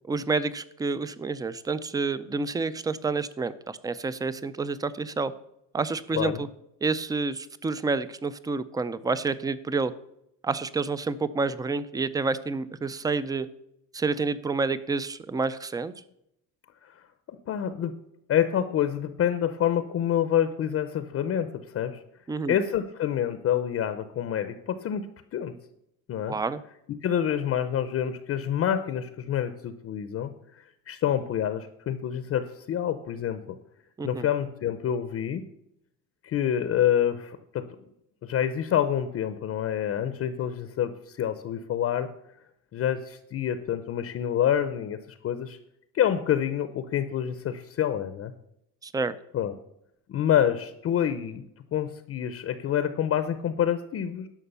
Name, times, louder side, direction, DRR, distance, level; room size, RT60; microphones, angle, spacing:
voice 1, 0.1-5.3 5.7-6.5 6.8-9.9 10.4-13.5 13.9-15.9 22.3-22.6 26.3-26.6 34.0-34.3 48.8-49.2, right 4 dB, 10° right, 16 dB, 0.4 m, -29 dB
voice 2, 16.8-17.9 18.3-22.0 22.5-25.1 25.3-25.5 26.1-26.3 27.0-33.6 34.0-35.4 36.2-37.6 38.2-42.1 42.7-45.0 45.2-45.6 45.9-48.3 49.3-49.5 50.1-51.4 51.7-54.3, left 9 dB, 40° left, 11 dB, 0.7 m, -27 dB
11.5 x 6.1 x 6.7 m, 0.78 s
cardioid pair, 145°, 37 cm